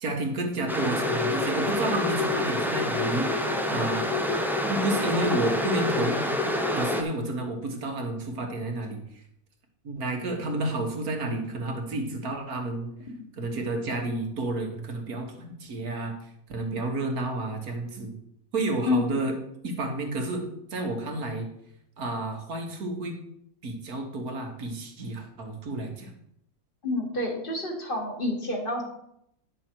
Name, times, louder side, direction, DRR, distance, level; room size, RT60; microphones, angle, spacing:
voice 1, 0.0-3.3 3.7-4.1 4.7-6.2 6.7-9.0 9.8-12.9 13.4-16.1 16.5-18.2 18.5-19.4 19.6-20.4 20.7-21.5 22.0-23.2 23.6-26.1, right 2 dB, 80° right, 3 dB, 1.9 m, -30 dB
sound 1, 0.7-7.0, left 1 dB, ahead, 0.4 m, -27 dB
voice 2, 26.8-28.8, left 2 dB, 35° left, 1 dB, 1.8 m, -28 dB
10.5 x 6.3 x 4.5 m, 0.75 s
omnidirectional pair, 1.5 m